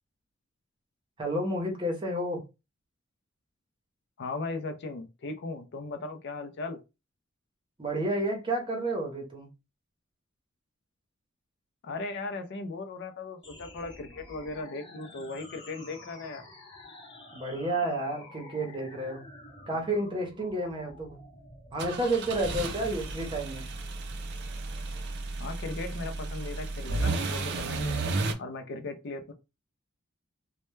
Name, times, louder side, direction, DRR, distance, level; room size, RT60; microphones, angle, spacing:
voice 1, 1.2-2.4 7.8-9.5 17.3-19.3 19.7-21.2 21.7-23.7, right 1 dB, 25° right, 0.7 m, -30 dB
voice 2, 4.2-6.8 11.8-16.4 25.4-28.0 28.4-29.3, left 3 dB, 55° left, 0.4 m, -37 dB
sound 1, 13.4-23.4, left 2 dB, 20° left, 0.8 m, -50 dB
sound 2, 21.8-28.3, right 3 dB, 55° right, 0.4 m, -33 dB
2.1 x 2.1 x 3.0 m
head